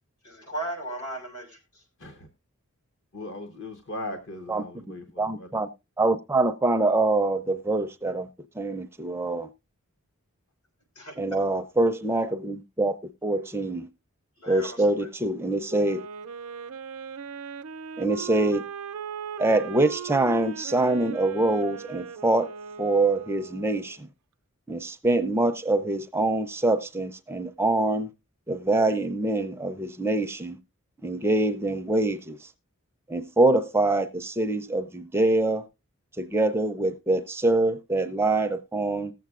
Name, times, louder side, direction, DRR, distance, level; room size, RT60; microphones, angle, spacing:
voice 1, 0.2-1.8 11.0-11.2 14.4-15.1, right 1 dB, 85° left, 6.0 m, -36 dB
voice 2, 3.1-5.6, left 1 dB, 55° left, 0.9 m, -38 dB
voice 3, 4.5-5.7 6.0-8.3 8.6-9.5 11.2-13.0 13.2-13.9 14.5-16.0 18.0-18.6 19.4-22.5 22.8-24.1 24.7-28.1 28.5-30.6 31.0-32.5 33.1-35.7 36.2-39.1, right 2 dB, 10° right, 0.4 m, -25 dB
Wind instrument woodwind instrument, 15.7-24.0, right 6 dB, 85° right, 0.5 m, -39 dB
19.5 x 7.5 x 2.4 m
head